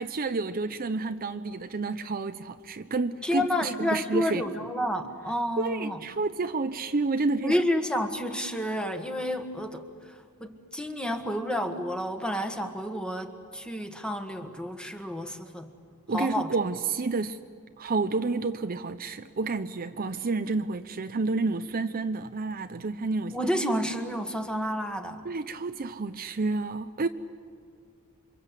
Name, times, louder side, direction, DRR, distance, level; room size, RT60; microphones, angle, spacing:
voice 1, 0.0-4.4 5.6-7.5 16.1-17.4 17.8-23.4 25.2-27.1, right 3 dB, 40° right, 0.7 m, -30 dB
voice 2, 3.2-6.0 7.4-15.7 16.1-16.5 23.3-25.2, equal, 5° left, 1.7 m, -30 dB
28.0 x 25.0 x 8.3 m
head